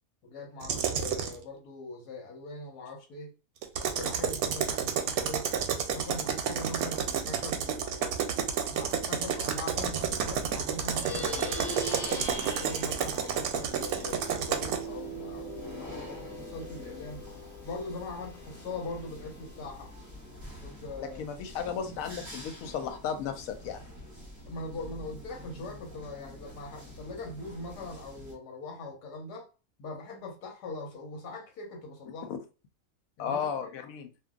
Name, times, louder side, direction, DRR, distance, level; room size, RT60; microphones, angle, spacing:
voice 1, 0.2-3.3 3.8-5.5 5.9-8.2 8.7-11.6 12.0-17.3 17.6-19.9 20.6-21.2 24.5-29.5 29.8-32.3 33.2-33.7, left 2 dB, 90° left, 1.5 m, -41 dB
sound 1, 0.6-1.4 3.6-14.8, right 7 dB, 75° right, 1.0 m, -30 dB
sound 2, 9.7-28.3, left 1 dB, 15° right, 0.9 m, -47 dB
Plucked string instrument, 10.8-20.6, equal, 50° left, 1.3 m, -42 dB
voice 2, 21.0-23.8 32.3-32.4 33.2-34.1, left 7 dB, 70° left, 0.9 m, -34 dB
2.7 x 2.6 x 2.3 m
omnidirectional pair, 1.7 m